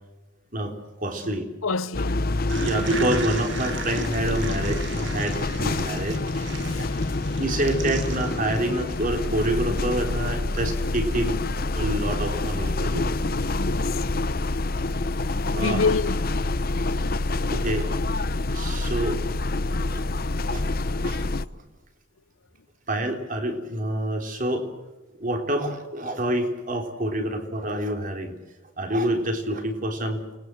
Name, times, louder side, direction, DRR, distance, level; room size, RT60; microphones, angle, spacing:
voice 1, 1.0-1.5 2.5-6.2 7.4-13.1 15.5-15.8 16.7-16.8 17.5-17.9 18.5-19.2 19.9-20.0 20.5-20.7 21.0-21.2 22.9-24.7 25.2-28.3 28.8-30.4, right 1 dB, 40° right, 3.5 m, -27 dB
voice 2, 1.6-2.3 6.6-7.0 13.6-14.0 15.3-16.3 16.7-17.0, left 4 dB, 75° left, 0.9 m, -28 dB
sound 1, 1.9-21.5, left 2 dB, 45° left, 0.7 m, -27 dB
sound 2, 2.5-11.1, right 4 dB, 60° right, 2.2 m, -38 dB
29.0 x 20.5 x 7.7 m
head